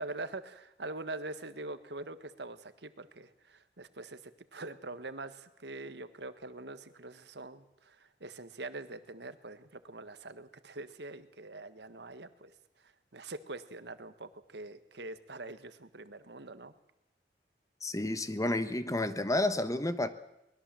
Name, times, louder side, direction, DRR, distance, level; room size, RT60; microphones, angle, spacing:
voice 1, 0.0-12.5 12.8-16.7, right 2 dB, 70° right, 12 dB, 1.5 m, -44 dB
voice 2, 17.8-20.1, left 1 dB, 20° left, 11 dB, 1.3 m, -30 dB
23.5 x 20.5 x 7.6 m, 0.85 s
head